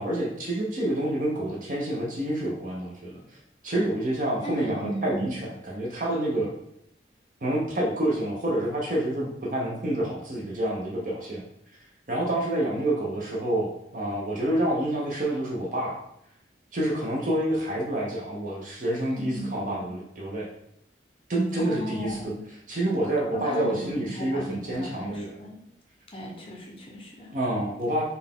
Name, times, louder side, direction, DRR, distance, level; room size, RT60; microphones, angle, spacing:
voice 1, 0.0-3.2 3.6-6.5 7.4-11.4 12.1-16.0 16.7-20.5 21.3-22.3 22.7-25.3 27.3-28.0, right 1 dB, 45° right, -3 dB, 0.6 m, -28 dB
voice 2, 4.4-5.4 19.0-19.8 21.6-22.4 23.3-25.6 26.1-27.3, equal, 30° left, 0 dB, 0.6 m, -36 dB
4.0 x 2.2 x 3.6 m, 0.78 s
head